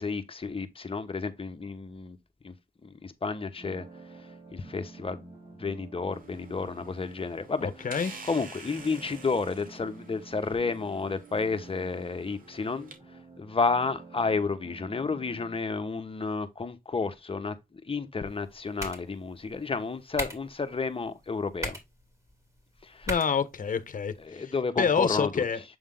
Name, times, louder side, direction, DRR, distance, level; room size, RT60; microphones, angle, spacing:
voice 1, 0.0-2.2 2.4-2.5 2.8-3.8 4.5-5.3 5.6-7.7 8.3-12.9 13.4-17.5 17.8-21.8 22.8-23.1 24.3-25.4, left 4 dB, 35° left, 1.2 m, -31 dB
sound 1, 3.6-15.6, right 4 dB, 40° right, 2.7 m, -49 dB
sound 2, 6.1-13.0, right 3 dB, 65° right, 2.2 m, -49 dB
voice 2, 7.6-8.1 23.1-25.6, left 6 dB, 60° left, 1.0 m, -28 dB
sound 3, 18.3-24.3, equal, 20° right, 2.8 m, -42 dB
8.0 x 3.6 x 3.7 m
cardioid pair, 85°, 15 cm